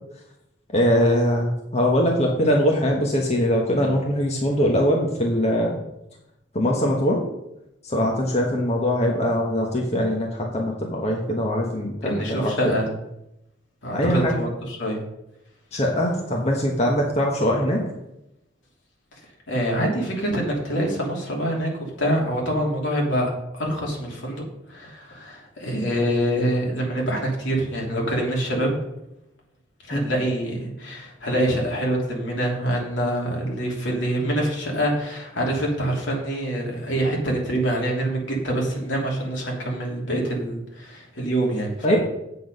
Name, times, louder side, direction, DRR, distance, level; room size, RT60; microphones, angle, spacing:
voice 1, 0.7-5.8 6.5-7.2 7.8-12.8 13.9-14.3 15.7-17.8 29.9-30.1 41.8-42.0, equal, 35° left, 0 dB, 1.3 m, -22 dB
voice 2, 12.0-12.9 13.8-15.0 19.5-24.4 24.7-28.8 29.8-42.0, right 1 dB, 70° left, -2 dB, 3.0 m, -25 dB
8.6 x 8.1 x 5.4 m, 0.88 s
head